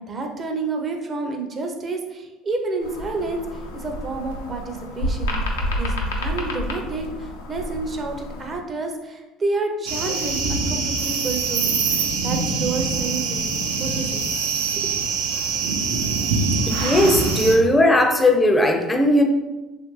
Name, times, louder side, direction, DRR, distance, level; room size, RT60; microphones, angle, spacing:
voice 1, 0.0-5.4 5.8-14.2 14.7-15.0, right 3 dB, 35° right, 3 dB, 0.6 m, -29 dB
sound 1, 2.8-8.6, left 1 dB, 90° left, 0.5 m, -29 dB
sound 2, 9.9-17.6, right 4 dB, 80° right, 0.4 m, -24 dB
voice 2, 16.7-19.2, left 1 dB, 15° left, 4 dB, 0.5 m, -17 dB
3.1 x 2.5 x 3.0 m, 1.1 s
hypercardioid pair, 70°, 0 cm